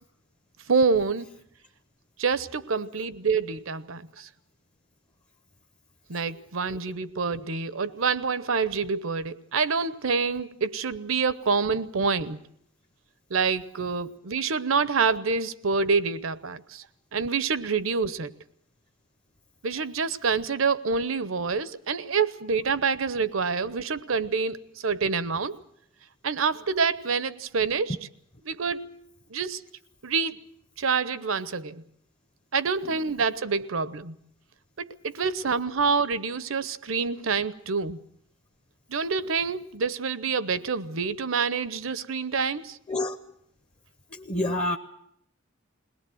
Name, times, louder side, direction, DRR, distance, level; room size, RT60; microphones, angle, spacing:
voice 1, 0.7-1.3 2.2-4.3 6.1-12.4 13.3-16.8 17.1-18.3 19.6-25.6 26.2-28.0 28.5-29.0 29.3-29.6 30.0-30.4 30.8-31.8 32.5-34.2 34.8-38.0 38.9-42.8, right 5 dB, 75° right, 0.9 m, -27 dB
voice 2, 44.1-44.8, left 1 dB, 30° left, 0.9 m, -29 dB
21.5 x 18.5 x 7.8 m
head